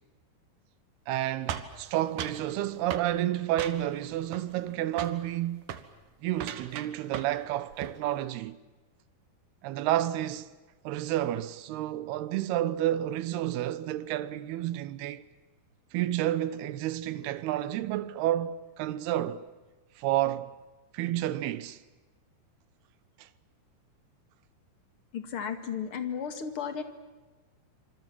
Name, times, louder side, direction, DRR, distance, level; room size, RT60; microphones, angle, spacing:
voice 1, 1.1-5.7 6.2-8.6 9.6-10.5 10.8-15.2 15.9-19.4 20.0-20.5 20.9-21.8 23.2-23.3, right 13 dB, 80° right, 3.0 m, -30 dB
sound 1, 1.5-2.5 2.9-3.1 3.6-4.0 4.3-4.7 5.0-5.2 5.6-5.9 6.3-7.4 7.7-8.0, right 9 dB, 60° right, 2.8 m, -37 dB
voice 2, 25.1-26.8, left 7 dB, 40° left, 2.4 m, -34 dB
27.0 x 27.0 x 7.6 m
omnidirectional pair, 4.6 m